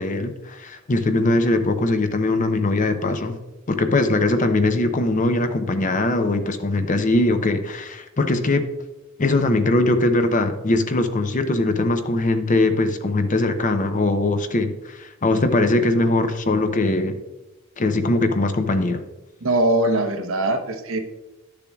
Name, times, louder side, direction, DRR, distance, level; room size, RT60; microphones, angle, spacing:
voice 1, 0.0-3.3 3.7-8.6 9.2-17.2 17.8-19.0, left 2 dB, 35° left, 8 dB, 0.6 m, -21 dB
voice 2, 19.4-21.0, right 1 dB, 65° right, 6 dB, 0.9 m, -21 dB
11.5 x 6.9 x 2.3 m, 1.0 s
head